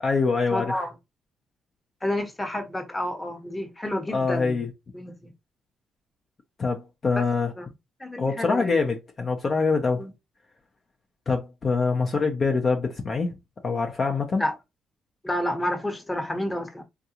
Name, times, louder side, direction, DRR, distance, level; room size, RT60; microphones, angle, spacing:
voice 1, 0.0-0.8 4.1-4.7 6.6-7.5 8.2-10.0 11.3-13.3 13.6-14.4, left 4 dB, 40° left, 0.6 m, -24 dB
voice 2, 0.5-0.9 2.0-4.6 4.9-5.3 7.1-7.2 7.6-7.7 8.0-8.8 10.0-10.1 14.4-14.5 15.2-16.8, left 1 dB, 15° left, 1.0 m, -29 dB
3.7 x 2.2 x 2.8 m
cardioid pair, 90°, 0 cm